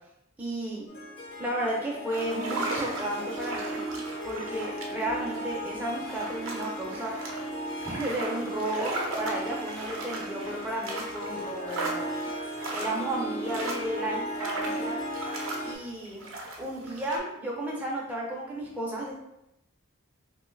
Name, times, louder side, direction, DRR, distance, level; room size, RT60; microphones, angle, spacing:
voice 1, 0.4-0.8 1.4-3.8 4.2-7.1 7.8-12.0 12.7-15.0 15.6-16.3 16.6-19.1, right 1 dB, 10° right, -4 dB, 0.5 m, -33 dB
Harp, 0.9-15.8, right 1 dB, 50° left, 0.6 m, -36 dB
sound 1, 2.1-17.2, right 2 dB, 65° right, 0.6 m, -38 dB
2.9 x 2.2 x 3.1 m, 0.84 s
head